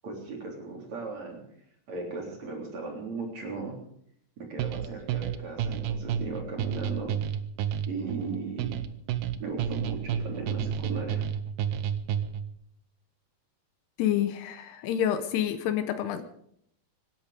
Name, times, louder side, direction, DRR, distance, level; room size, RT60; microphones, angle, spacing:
voice 1, 0.0-1.4 1.9-3.8 4.4-7.2 7.9-8.8 9.4-11.3, right 3 dB, 40° right, 0 dB, 4.5 m, -36 dB
sound 1, 4.6-12.5, right 9 dB, 80° right, 2.0 m, -31 dB
voice 2, 14.0-16.2, left 10 dB, 75° left, 10 dB, 2.8 m, -28 dB
25.0 x 11.0 x 5.1 m, 0.69 s
omnidirectional pair, 5.0 m